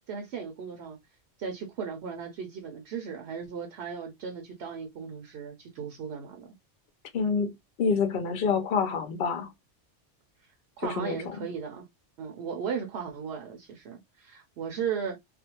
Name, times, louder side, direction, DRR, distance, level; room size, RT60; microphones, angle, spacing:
voice 1, 0.1-1.0 1.4-6.5 10.8-11.9 12.2-15.2, right 6 dB, 65° right, 0.8 m, -36 dB
voice 2, 7.1-9.5 10.8-11.4, left 5 dB, 60° left, 0.7 m, -27 dB
2.5 x 2.1 x 2.8 m
omnidirectional pair, 1.2 m